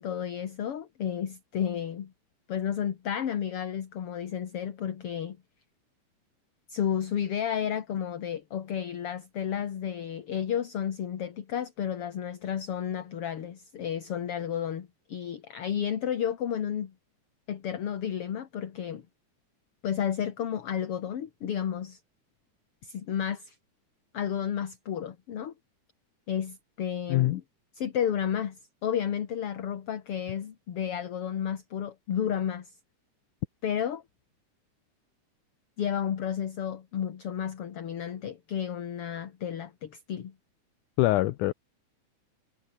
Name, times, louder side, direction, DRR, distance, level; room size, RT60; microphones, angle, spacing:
voice 1, 0.0-2.1 2.5-5.4 6.7-16.9 17.5-19.0 19.8-22.0 22.8-23.6 24.1-25.5 26.3-27.4 27.8-32.7 33.6-34.0 35.8-40.3, left 9 dB, 50° left, 2.4 m, -32 dB
voice 2, 27.1-27.4 41.0-41.5, left 17 dB, 80° left, 2.2 m, -24 dB
omnidirectional pair, 3.6 m